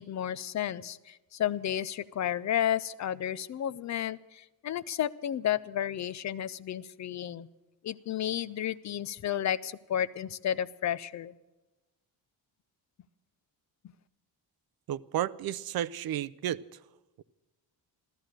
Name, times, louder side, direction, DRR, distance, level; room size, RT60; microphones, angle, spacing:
voice 1, 0.0-7.5 7.8-11.3, left 10 dB, 40° left, 0.4 m, -32 dB
voice 2, 14.9-16.6 17.2-17.3, right 11 dB, 55° right, 0.5 m, -32 dB
14.0 x 14.0 x 6.4 m
wide cardioid pair, 165°, 43 cm